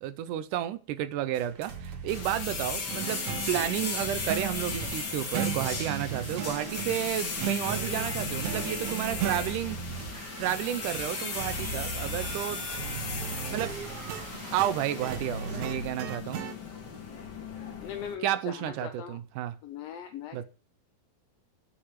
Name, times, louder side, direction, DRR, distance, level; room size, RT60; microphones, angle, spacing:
voice 1, 0.0-9.8 10.4-13.0 13.5-13.7 14.5-16.5 18.2-19.6 20.3-20.4, right 12 dB, 90° right, 2.3 m, -32 dB
sound 1, 1.3-15.9, right 4 dB, 50° right, 2.4 m, -40 dB
sound 2, 2.1-18.1, left 5 dB, 40° left, 2.0 m, -37 dB
sound 3, 2.9-9.5 13.2-16.6, right 10 dB, 70° right, 2.0 m, -37 dB
voice 2, 17.8-19.2 19.6-20.4, left 9 dB, 70° left, 1.6 m, -40 dB
9.0 x 7.0 x 7.4 m
omnidirectional pair, 3.5 m